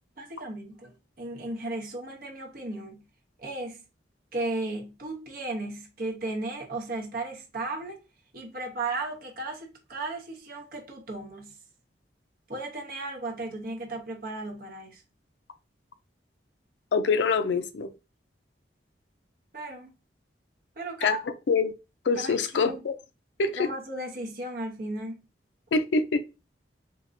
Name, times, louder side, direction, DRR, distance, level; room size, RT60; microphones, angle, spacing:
voice 1, 0.2-3.0 3.4-3.8 4.3-8.0 8.3-11.5 12.5-15.0 19.5-19.9 20.8-21.2 22.2-22.7 23.6-25.2, right 2 dB, 55° right, 0.9 m, -35 dB
voice 2, 16.9-17.9 21.0-21.2 21.5-21.7 22.0-22.9 23.4-23.7 25.7-26.2, left 4 dB, 85° left, 0.4 m, -25 dB
3.7 x 2.7 x 2.5 m
head